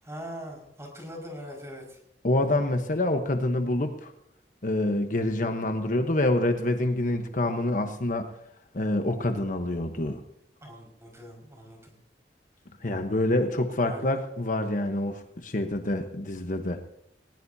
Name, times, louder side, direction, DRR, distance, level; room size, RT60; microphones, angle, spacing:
voice 1, 0.0-2.0 10.6-11.9 13.8-14.2, equal, 15° right, 0 dB, 5.5 m, -42 dB
voice 2, 2.2-4.1 4.6-8.3 8.7-10.2 12.8-16.8, left 1 dB, 50° left, 5 dB, 1.1 m, -26 dB
20.0 x 19.0 x 2.8 m, 0.75 s
head